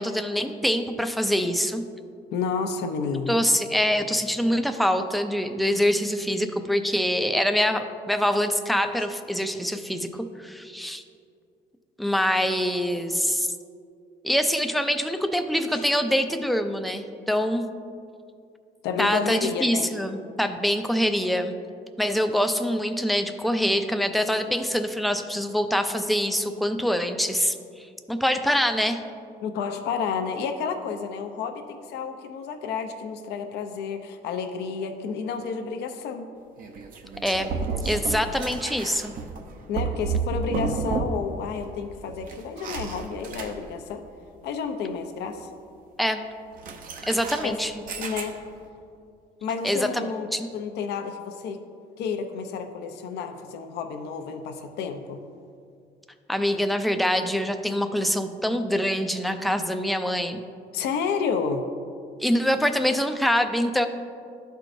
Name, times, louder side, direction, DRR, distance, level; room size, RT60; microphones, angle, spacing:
voice 1, 0.0-1.8 3.3-11.0 12.0-13.5 14.2-17.7 19.0-21.5 22.0-27.6 28.1-29.0 37.2-37.5 37.8-39.1 46.0-46.2 47.1-47.7 49.6-50.0 50.3-50.4 56.3-60.4 62.2-63.9, equal, ahead, 6 dB, 0.4 m, -24 dB
voice 2, 2.3-3.4 15.7-15.8 18.8-19.9 29.4-36.3 39.7-44.0 44.4-45.5 47.4-47.6 48.0-48.4 49.4-50.3 50.5-51.6 52.0-55.2 60.7-61.7, left 6 dB, 80° left, 6 dB, 0.7 m, -30 dB
sound 1, 36.6-41.4 41.7-43.9 46.5-48.6, right 4 dB, 55° right, 0.7 m, -31 dB
12.0 x 4.6 x 2.6 m, 2.4 s
cardioid pair, 110°, 17 cm